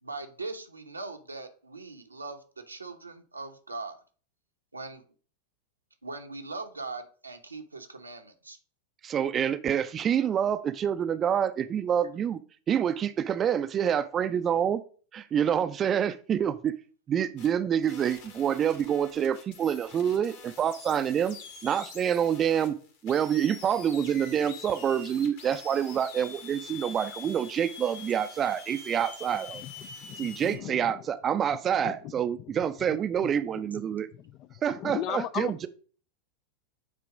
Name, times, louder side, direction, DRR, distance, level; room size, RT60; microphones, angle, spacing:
voice 1, 0.0-4.0 4.7-5.0 6.0-8.6, right 3 dB, 80° right, 0.9 m, -40 dB
voice 2, 9.0-12.4 12.7-14.8 15.1-16.7 17.1-21.4 21.6-22.8 23.0-29.6 30.2-34.1 34.6-35.7, right 8 dB, 25° right, 0.5 m, -27 dB
sound 1, 17.4-17.5 17.8-30.6, left 5 dB, 55° left, 1.8 m, -46 dB
voice 3, 29.5-31.0 31.8-31.9 32.9-33.3 34.7-35.5, left 12 dB, 35° left, 0.4 m, -37 dB
8.9 x 3.0 x 4.9 m
figure-of-eight pair, 90°, 0 cm